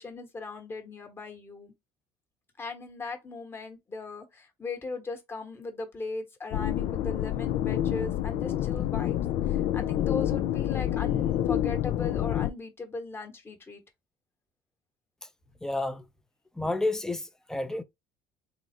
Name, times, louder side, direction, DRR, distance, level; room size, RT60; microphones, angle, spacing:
voice 1, 0.0-1.7 2.6-9.2 9.5-13.8, left 3 dB, 20° left, 1.2 m, -38 dB
sound 1, 6.5-12.5, left 12 dB, 60° left, 0.4 m, -28 dB
voice 2, 15.6-16.0 16.6-17.8, left 2 dB, 5° left, 0.5 m, -30 dB
3.8 x 2.0 x 4.3 m
cardioid pair, 125°, 11 cm